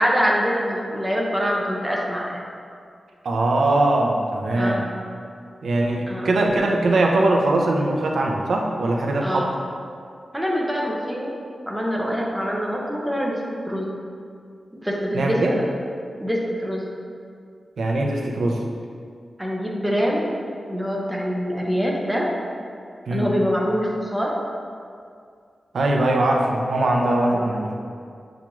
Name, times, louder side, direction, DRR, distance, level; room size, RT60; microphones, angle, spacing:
voice 1, 0.0-2.4 4.5-4.9 6.1-6.3 9.2-9.5 10.3-11.3 11.7-13.4 13.7-13.9 14.8-15.7 16.2-16.8 19.4-20.3 20.7-22.3 23.1-24.3 27.3-27.5, equal, 5° right, -3 dB, 0.6 m, -24 dB
voice 2, 3.2-4.8 5.6-9.5 15.1-15.5 17.8-18.6 23.1-23.3 25.7-27.7, right 2 dB, 80° right, 0 dB, 0.5 m, -21 dB
6.9 x 2.4 x 3.0 m, 2.2 s
wide cardioid pair, 120°, 0 cm